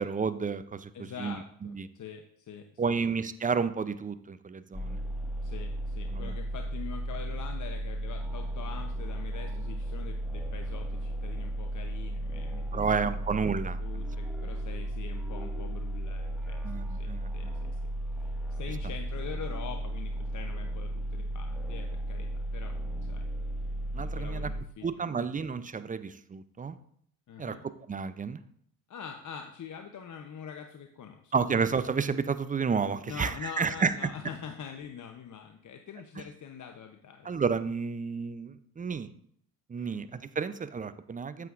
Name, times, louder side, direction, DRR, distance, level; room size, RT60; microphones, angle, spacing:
voice 1, 0.0-1.9 2.8-5.0 6.1-6.4 12.7-14.0 16.6-17.5 23.9-24.5 24.8-26.8 27.4-27.6 27.9-28.4 31.3-33.9 37.2-39.1 39.7-41.5, right 5 dB, 20° right, 13 dB, 0.5 m, -31 dB
voice 2, 0.9-3.0 5.4-13.4 13.8-17.8 18.1-23.3 23.9-25.3 27.3-27.6 28.9-31.3 33.1-37.3 39.8-40.0, left 7 dB, 40° left, 5 dB, 0.8 m, -44 dB
sound 1, 4.7-24.6, right 1 dB, ahead, 1.6 m, -34 dB
9.1 x 7.7 x 2.5 m, 0.66 s
hypercardioid pair, 55°, 47 cm